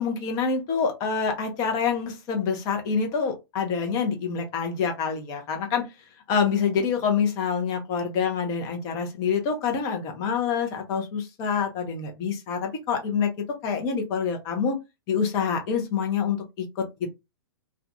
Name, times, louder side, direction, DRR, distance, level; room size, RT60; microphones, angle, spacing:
voice 1, 0.0-5.9 6.3-14.8 15.1-16.8, left 6 dB, 30° left, 0.7 m, -26 dB
2.5 x 2.3 x 2.6 m
figure-of-eight pair, 110°, 13 cm